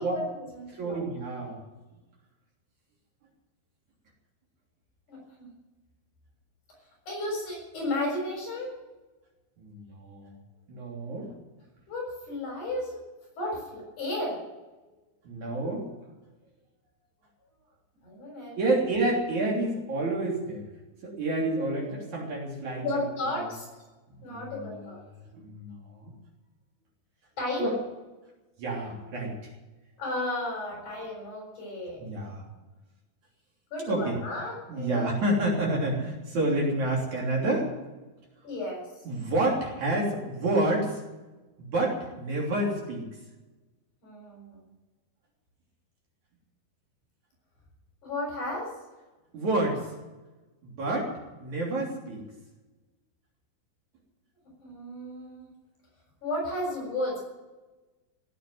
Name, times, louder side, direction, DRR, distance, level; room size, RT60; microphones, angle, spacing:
voice 1, 0.0-1.1 5.1-5.5 7.1-8.7 11.9-13.0 13.4-14.4 18.0-18.6 22.8-23.6 24.2-25.0 27.4-27.8 30.0-32.0 33.7-35.1 38.4-38.9 44.0-44.6 48.0-48.7 54.6-55.5 56.2-57.2, left 1 dB, 50° left, -2 dB, 8.1 m, -33 dB
voice 2, 0.7-1.6 9.6-10.3 10.7-11.4 15.2-15.9 18.6-20.6 21.0-22.9 24.2-24.9 25.3-26.1 27.6-27.8 28.6-29.3 32.0-32.4 33.9-34.2 34.7-37.7 39.1-41.0 41.6-43.1 49.3-49.9 50.6-52.2, right 2 dB, 50° right, -2 dB, 4.4 m, -29 dB
17.0 x 8.6 x 9.1 m, 1.2 s
omnidirectional pair, 4.4 m